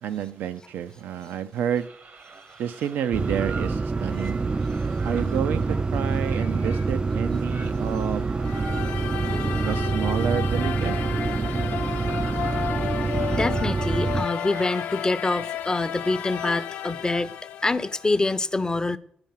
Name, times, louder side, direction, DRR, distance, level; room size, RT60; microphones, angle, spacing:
voice 1, 0.0-1.9 2.6-4.4 5.0-8.3 9.6-11.0, right 9 dB, 85° right, 0.5 m, -29 dB
sound 1, 1.7-15.2, right 4 dB, 55° right, 0.9 m, -45 dB
sound 2, 3.1-14.3, right 4 dB, 30° right, 0.3 m, -26 dB
sound 3, 8.4-18.4, left 10 dB, 80° left, 0.4 m, -33 dB
voice 2, 9.2-9.7 12.8-17.4 17.6-19.0, left 2 dB, 25° left, 0.6 m, -26 dB
10.5 x 4.5 x 5.6 m
supercardioid pair, 55°, 3 cm